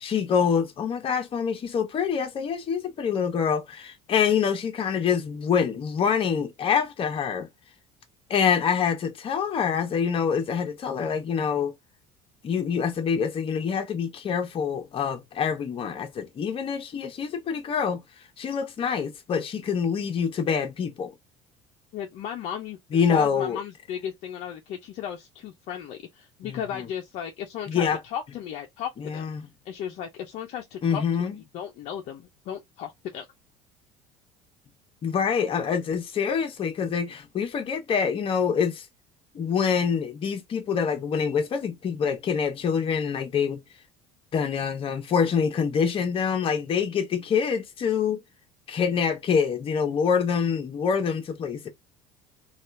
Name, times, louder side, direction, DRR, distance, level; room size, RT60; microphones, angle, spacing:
voice 1, 0.0-7.5 8.3-11.7 12.4-18.0 18.4-21.1 22.9-23.6 26.4-26.9 27.7-28.0 29.0-29.4 30.8-31.4 35.0-38.9 39.3-43.6 44.3-48.2 48.7-51.7, left 6 dB, 45° left, 1.0 m, -26 dB
voice 2, 21.9-22.8 23.1-29.3 29.7-31.3 31.5-33.2, left 9 dB, 60° left, 0.6 m, -35 dB
2.8 x 2.4 x 3.2 m
supercardioid pair, 90°, 13 cm